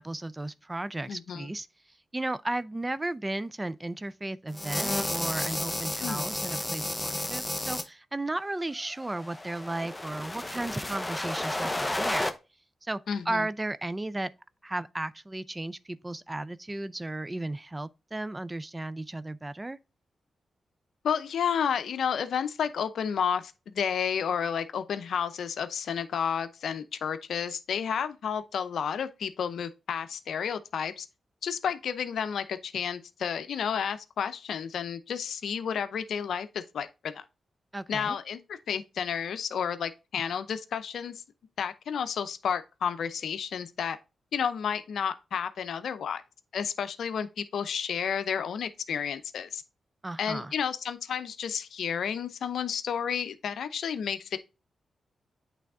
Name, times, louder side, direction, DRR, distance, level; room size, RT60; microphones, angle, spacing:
voice 1, 0.0-1.7 2.1-12.3 12.8-13.0 13.3-14.3 14.6-19.8 37.7-38.2 50.0-50.5, right 2 dB, 20° right, 0.4 m, -34 dB
voice 2, 1.1-1.5 6.0-6.2 13.1-13.5 21.0-31.1 31.4-37.2 37.9-41.2 41.6-44.0 44.3-46.2 46.5-49.6 50.2-54.4, left 7 dB, 80° left, 0.6 m, -31 dB
sound 1, 4.5-7.8 9.0-12.3, left 1 dB, 15° left, 0.8 m, -32 dB
8.4 x 3.4 x 3.6 m
cardioid pair, 65°, 0 cm